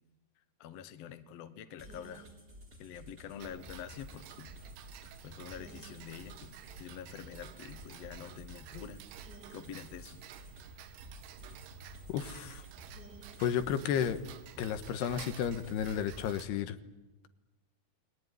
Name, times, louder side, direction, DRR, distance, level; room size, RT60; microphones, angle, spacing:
voice 1, 0.6-2.2 2.8-4.5 5.2-9.1 9.5-10.2, left 9 dB, 65° left, 10 dB, 1.7 m, -46 dB
sound 1, 1.8-16.6, equal, 25° right, 4.4 m, -53 dB
Tick-tock, 3.4-16.5, right 9 dB, 80° right, 3.3 m, -51 dB
voice 2, 12.1-12.6 13.4-14.2 14.6-16.8, left 9 dB, 85° left, 10 dB, 3.2 m, -32 dB
29.0 x 21.5 x 9.4 m, 1.1 s
omnidirectional pair, 4.7 m